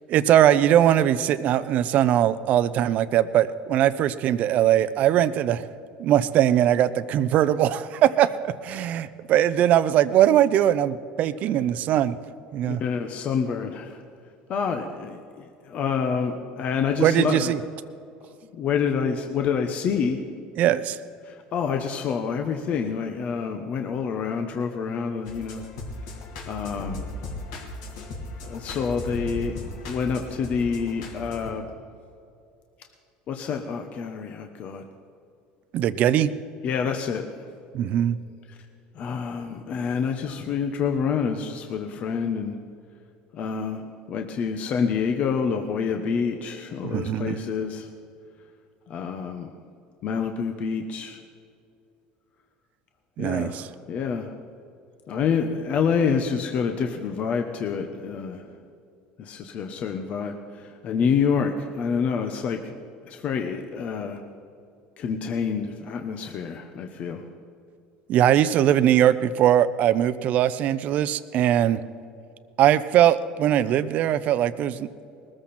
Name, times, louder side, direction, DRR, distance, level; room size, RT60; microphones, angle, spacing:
voice 1, 0.1-5.6 6.0-12.2 12.5-12.8 17.0-17.6 20.6-21.0 35.7-36.3 37.7-38.2 46.8-47.4 53.2-53.6 68.1-71.8 72.6-74.9, right 11 dB, 55° right, 14 dB, 0.7 m, -21 dB
voice 2, 12.6-14.0 14.5-17.5 18.5-20.2 21.2-25.7 26.0-26.1 26.5-27.1 28.4-29.6 29.9-31.6 33.3-34.8 36.6-37.5 38.5-38.6 38.9-42.6 43.3-47.9 48.9-49.5 50.0-51.2 53.2-54.4 55.1-58.5 59.2-62.7 63.0-64.2 65.0-67.3, left 6 dB, 50° left, 5 dB, 1.1 m, -27 dB
sound 1, 25.3-31.5, left 2 dB, 80° left, 2.9 m, -37 dB
20.5 x 14.0 x 4.4 m, 2.5 s
supercardioid pair, 110°, 3 cm